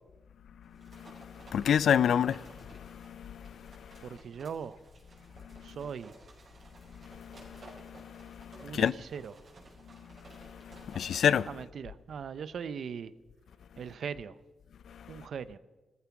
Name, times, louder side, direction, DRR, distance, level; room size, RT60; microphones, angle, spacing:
sound 1, 0.6-11.4, right 2 dB, 50° right, 5.2 m, -55 dB
voice 1, 0.8-4.1 5.4-5.8 6.9-8.9 9.9-10.1 10.3-11.5 14.9-15.3, left 8 dB, 80° left, 0.4 m, -31 dB
voice 2, 4.0-4.8 5.6-6.1 8.6-9.3 11.5-13.1 13.8-14.3 15.1-15.6, right 7 dB, 65° right, 0.6 m, -40 dB
16.0 x 14.0 x 5.9 m
wide cardioid pair, 145°, 0 cm